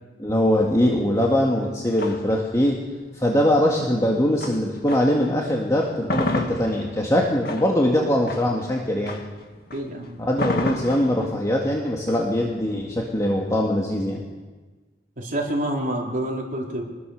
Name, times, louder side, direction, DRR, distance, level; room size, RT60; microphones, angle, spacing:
voice 1, 0.2-2.8 3.1-9.2 10.2-14.2, left 1 dB, 20° left, -1 dB, 2.0 m, -22 dB
sound 1, 1.2-5.3 5.7-13.6, left 2 dB, 55° left, 2.0 m, -32 dB
voice 2, 9.7-10.2 15.2-16.8, right 1 dB, 50° right, -1 dB, 4.1 m, -27 dB
25.5 x 20.0 x 6.6 m, 1.3 s
head